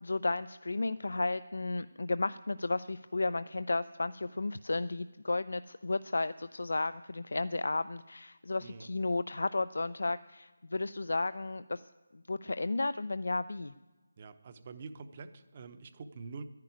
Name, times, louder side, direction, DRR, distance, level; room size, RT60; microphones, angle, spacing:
voice 1, 0.0-11.9 12.3-13.7, left 2 dB, 70° left, 14 dB, 0.5 m, -33 dB
voice 2, 14.2-16.4, right 4 dB, 25° right, 11 dB, 0.8 m, -46 dB
11.0 x 10.5 x 9.5 m, 1.2 s
figure-of-eight pair, 175°, 0 cm